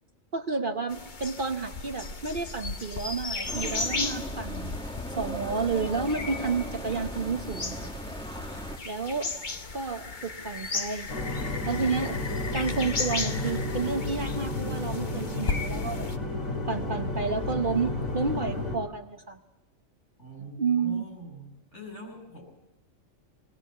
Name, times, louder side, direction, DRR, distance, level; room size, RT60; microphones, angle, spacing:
voice 1, 0.3-4.7 5.2-7.9 8.5-8.6 8.8-9.3 9.7-11.1 11.7-12.2 12.5-16.1 16.7-19.4 20.6-21.0, right 4 dB, 45° right, 7 dB, 1.0 m, -30 dB
sound 1, 0.9-16.2, left 3 dB, 40° left, 1.3 m, -36 dB
sound 2, 3.5-8.8, equal, 5° left, 1.1 m, -37 dB
sound 3, 11.1-18.8, left 2 dB, 90° left, 3.4 m, -32 dB
voice 2, 20.2-22.4, right 1 dB, 60° left, -1 dB, 7.3 m, -43 dB
22.0 x 19.5 x 8.4 m, 0.91 s
omnidirectional pair, 1.4 m